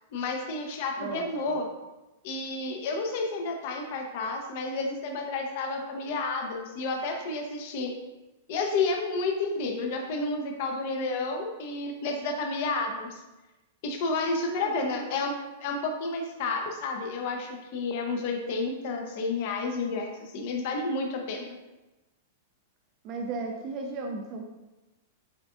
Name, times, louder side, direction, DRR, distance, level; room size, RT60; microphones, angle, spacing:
voice 1, 0.1-1.6 2.2-7.9 8.5-13.2 13.8-15.3 15.6-21.6, left 3 dB, 55° left, 3 dB, 0.6 m, -31 dB
voice 2, 1.0-1.6 14.3-15.0 23.0-24.4, right 3 dB, 40° right, 2 dB, 0.4 m, -36 dB
7.1 x 2.5 x 2.4 m, 1.1 s
hypercardioid pair, 120°, 0 cm